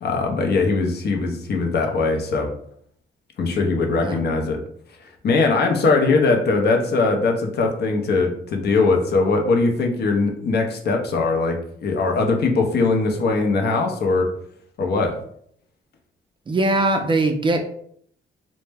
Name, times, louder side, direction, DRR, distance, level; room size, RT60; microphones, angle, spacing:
voice 1, 0.0-2.5 3.4-4.6 5.2-14.3 14.8-15.1, left 3 dB, 55° left, 3 dB, 0.6 m, -20 dB
voice 2, 16.5-17.7, right 2 dB, 25° right, 4 dB, 0.3 m, -21 dB
2.1 x 2.1 x 3.3 m, 0.65 s
cardioid pair, 90°, 20 cm